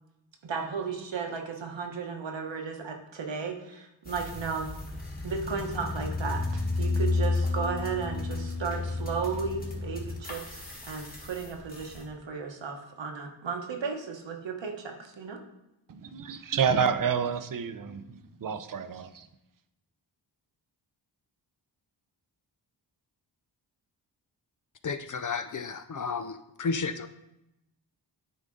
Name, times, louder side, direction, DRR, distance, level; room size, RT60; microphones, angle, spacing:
voice 1, 0.4-4.7 5.2-6.4 6.8-15.4, right 5 dB, 75° right, 1.2 m, -34 dB
sound 1, 4.1-12.0, left 3 dB, 20° left, 1.5 m, -32 dB
voice 2, 15.9-19.3, right 6 dB, 50° right, 0.6 m, -29 dB
voice 3, 24.8-27.1, left 5 dB, 45° left, 0.5 m, -32 dB
10.0 x 3.9 x 3.8 m
wide cardioid pair, 80°, 44 cm